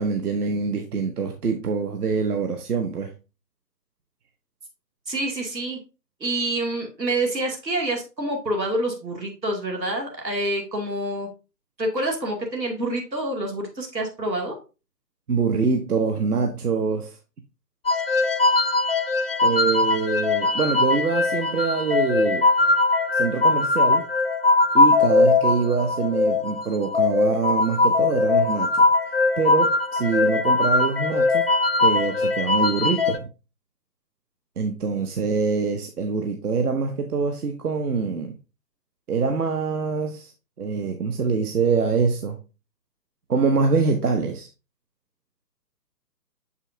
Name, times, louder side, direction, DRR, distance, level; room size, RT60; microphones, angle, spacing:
voice 1, 0.0-3.1 15.3-17.2 19.4-22.4 23.1-24.1 24.7-28.8 29.4-31.5 31.8-33.3 34.6-38.4 39.1-40.3 40.6-42.4 43.3-44.5, right 5 dB, 65° right, 1.0 m, -24 dB
voice 2, 5.1-5.8 6.2-11.3 11.8-14.6, right 1 dB, 85° right, 2.5 m, -27 dB
sound 1, 17.9-33.2, left 3 dB, 40° left, 0.4 m, -21 dB
6.9 x 5.5 x 2.7 m
figure-of-eight pair, 140°, 50 cm